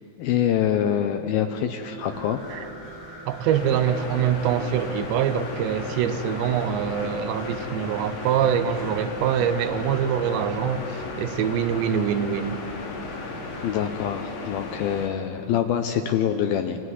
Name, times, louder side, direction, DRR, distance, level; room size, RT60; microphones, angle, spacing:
voice 1, 0.2-2.4 13.6-16.8, left 9 dB, 80° left, 7 dB, 2.3 m, -25 dB
sound 1, 1.4-13.4, right 2 dB, 30° right, 4.9 m, -44 dB
sound 2, 2.0-13.7, left 1 dB, 35° left, 4.4 m, -43 dB
voice 2, 3.3-12.6, right 8 dB, 85° right, 9 dB, 3.2 m, -24 dB
sound 3, 3.5-15.1, left 3 dB, 60° left, 3.7 m, -36 dB
26.5 x 16.0 x 9.7 m, 2.7 s
omnidirectional pair, 5.0 m